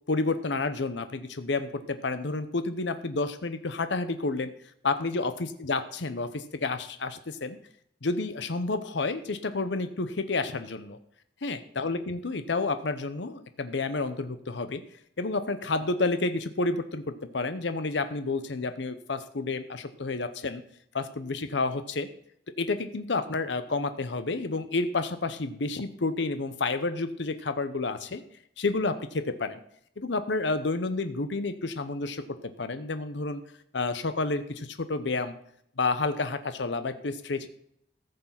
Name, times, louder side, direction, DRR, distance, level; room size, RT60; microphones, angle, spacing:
voice 1, 0.1-4.5 4.8-7.6 8.0-11.0 11.4-14.8 15.2-20.6 20.9-22.1 22.6-28.2 28.6-29.6 30.0-33.4 33.7-35.4 35.8-37.5, left 3 dB, 75° left, 11 dB, 0.8 m, -30 dB
14.5 x 6.7 x 5.7 m, 0.70 s
head